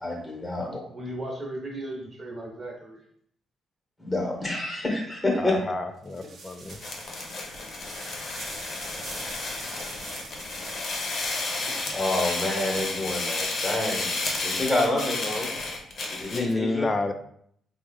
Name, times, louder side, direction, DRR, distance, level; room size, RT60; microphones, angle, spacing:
voice 1, 0.0-0.8 4.0-5.5 11.9-14.2 14.4-15.5 16.1-16.9, left 2 dB, 10° left, -1 dB, 1.0 m, -28 dB
voice 2, 0.6-3.0, right 1 dB, 30° right, -1 dB, 0.9 m, -36 dB
voice 3, 5.4-6.8 16.2-17.1, left 2 dB, 25° left, 8 dB, 0.3 m, -29 dB
sound 1, 6.0-15.9, right 3 dB, 55° right, 0.6 m, -46 dB
sound 2, 6.7-16.5, left 3 dB, 55° left, 0.7 m, -32 dB
3.2 x 2.0 x 3.4 m, 0.67 s
cardioid pair, 90°, 0 cm